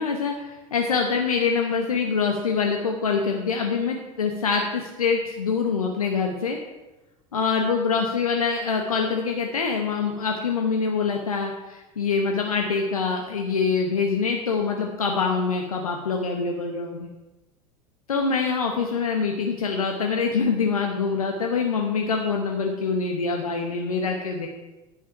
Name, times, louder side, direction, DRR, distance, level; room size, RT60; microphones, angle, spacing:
voice 1, 0.0-6.6 7.3-17.1 18.1-24.5, left 5 dB, 80° left, 2 dB, 1.0 m, -25 dB
10.0 x 6.0 x 5.7 m, 1.0 s
figure-of-eight pair, 75°, 18 cm